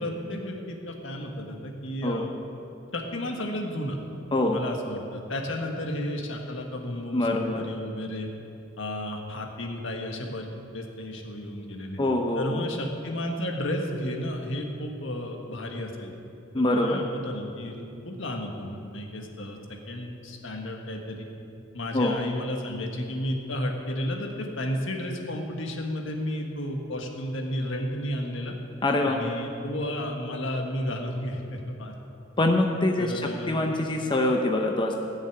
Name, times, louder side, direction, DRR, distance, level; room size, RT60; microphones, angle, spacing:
voice 1, 0.0-2.3 2.9-4.0 4.4-8.3 8.8-10.5 10.7-12.0 12.3-16.1 16.5-19.6 19.9-21.3 21.7-28.5 29.0-31.9 33.0-33.5, left 1 dB, 70° left, 2 dB, 1.7 m, -32 dB
voice 2, 7.1-7.6 12.0-12.6 16.5-17.0 21.9-22.1 28.8-29.2 32.4-33.1 33.5-35.0, left 1 dB, 25° left, 2 dB, 0.7 m, -24 dB
15.5 x 6.6 x 9.4 m, 2.7 s
head